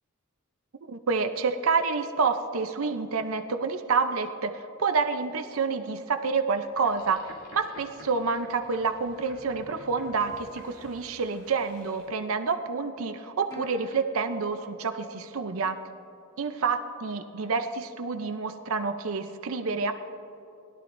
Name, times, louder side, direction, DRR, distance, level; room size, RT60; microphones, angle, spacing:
voice 1, 0.9-7.2 7.5-15.8 16.4-19.9, right 4 dB, 70° right, 7 dB, 0.6 m, -28 dB
Boat Water vehicle, 6.7-12.1, left 1 dB, 80° left, 2.6 m, -51 dB
Plucked string instrument, 13.5-16.2, left 1 dB, 15° left, 2.8 m, -50 dB
20.0 x 11.5 x 2.6 m, 2.8 s
head